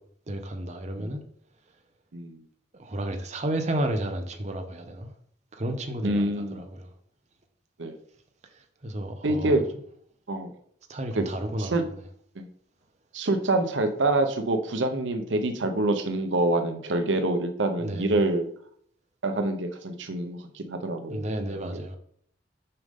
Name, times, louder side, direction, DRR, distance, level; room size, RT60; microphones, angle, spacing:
voice 1, 0.3-1.2 2.8-5.1 5.5-6.9 8.5-9.6 10.9-11.8 17.8-18.1 21.1-22.0, right 1 dB, 40° right, 0.8 m, -32 dB
voice 2, 6.0-6.6 7.8-8.0 9.2-9.6 10.3-10.5 11.1-11.2 11.6-11.8 12.4-12.5 13.1-18.5 19.2-21.2 21.6-21.8, right 2 dB, 85° right, 0.8 m, -26 dB
6.8 x 5.2 x 3.6 m
head